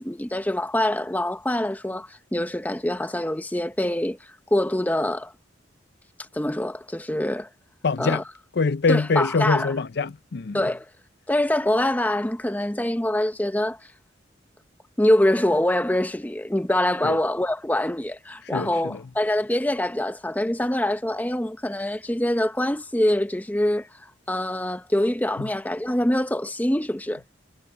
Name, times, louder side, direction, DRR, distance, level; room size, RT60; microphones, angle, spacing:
voice 1, 0.0-4.2 4.5-5.3 6.3-7.5 8.0-8.2 8.9-9.7 10.5-10.8 11.3-13.8 15.0-23.9 24.3-27.2, left 1 dB, 10° left, 0.8 m, -24 dB
voice 2, 7.8-8.2 8.5-10.6 17.0-17.2 18.4-19.0 25.4-25.5, left 4 dB, 60° left, 0.5 m, -24 dB
head